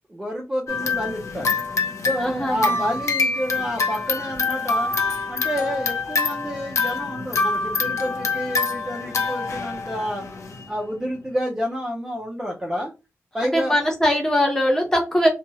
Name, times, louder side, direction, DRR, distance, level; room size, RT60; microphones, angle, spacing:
voice 1, 0.1-1.5 2.1-4.9 5.3-10.2 10.7-12.9 13.3-13.8, equal, 10° right, -2 dB, 0.5 m, -29 dB
sound 1, 0.7-10.7, left 4 dB, 65° left, 0.5 m, -26 dB
voice 2, 2.2-2.8 13.4-15.3, equal, 10° left, -1 dB, 1.0 m, -21 dB
2.8 x 2.2 x 2.8 m, 0.26 s
wide cardioid pair, 175°, 5 cm